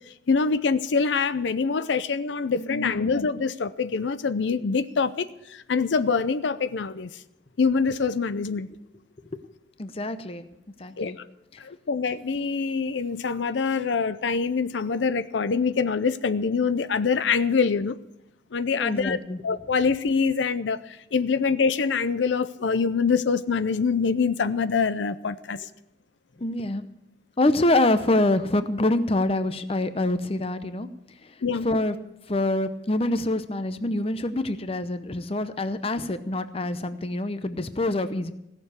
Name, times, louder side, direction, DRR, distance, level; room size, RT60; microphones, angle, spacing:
voice 1, 0.3-7.2 7.6-8.7 11.0-11.3 11.6-18.0 18.5-19.2 19.4-25.7 31.4-31.7, left 5 dB, 80° left, 13 dB, 0.5 m, -25 dB
voice 2, 2.5-3.1 9.3-9.4 9.8-10.5 10.8-11.2 11.5-11.6 18.8-19.4 26.4-26.8 27.4-30.9 31.2-32.0 32.3-38.3, left 2 dB, 30° left, 11 dB, 0.7 m, -26 dB
17.0 x 6.8 x 8.2 m, 0.86 s
head